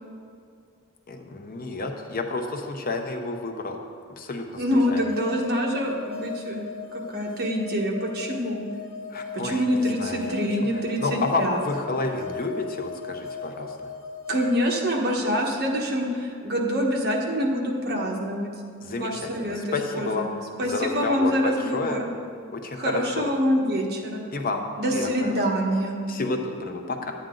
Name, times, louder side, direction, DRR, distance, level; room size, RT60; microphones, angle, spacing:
voice 1, 1.1-3.8 4.2-4.6 4.9-5.0 9.1-10.6 11.0-13.9 18.8-20.3 20.6-22.0 22.5-23.2 24.3-24.6 24.9-25.3 26.1-27.1, left 3 dB, 40° left, 4 dB, 0.8 m, -30 dB
voice 2, 4.6-6.6 6.9-8.6 9.3-11.6 14.3-18.5 19.0-19.6 19.9-20.3 20.6-22.0 22.8-24.2 24.8-26.0, equal, 50° right, 0 dB, 1.3 m, -25 dB
sound 1, 4.8-14.6, left 5 dB, 65° left, 1.0 m, -37 dB
10.5 x 9.0 x 3.8 m, 2.3 s
head